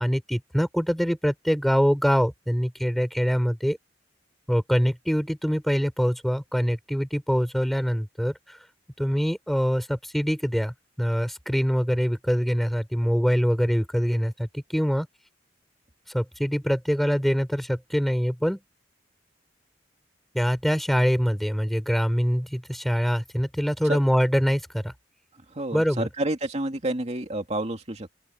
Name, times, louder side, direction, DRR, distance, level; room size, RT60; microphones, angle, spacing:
voice 1, 0.0-3.8 4.5-8.6 9.0-15.1 16.1-18.6 20.3-24.9 25.7-26.1, equal, ahead, 3.9 m, -24 dB
voice 2, 25.5-28.1, right 1 dB, 35° right, 2.5 m, -29 dB
open air
head